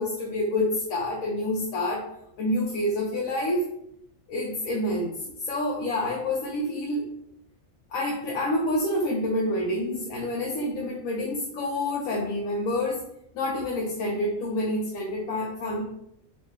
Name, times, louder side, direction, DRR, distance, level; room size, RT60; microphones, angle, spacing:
voice 1, 0.0-2.0 2.4-3.7 4.3-5.1 5.4-7.1 7.9-13.0 13.3-15.8, left 1 dB, 80° left, -2 dB, 1.0 m, -28 dB
3.0 x 2.6 x 3.2 m, 0.77 s
omnidirectional pair, 1.4 m